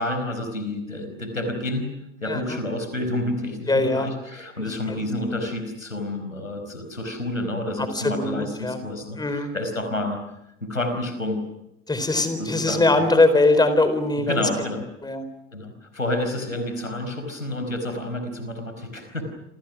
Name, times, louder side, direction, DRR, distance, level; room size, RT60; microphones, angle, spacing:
voice 1, 0.0-1.9 2.2-10.2 10.6-11.4 12.4-12.8 14.2-14.8 15.5-19.2, left 1 dB, 90° left, 7 dB, 4.7 m, -29 dB
voice 2, 2.3-2.6 3.7-4.1 4.9-5.0 7.8-8.8 9.2-9.5 11.9-14.4 15.0-15.2, left 2 dB, 10° left, 11 dB, 4.2 m, -21 dB
28.0 x 28.0 x 6.2 m, 0.85 s
figure-of-eight pair, 75°, 38 cm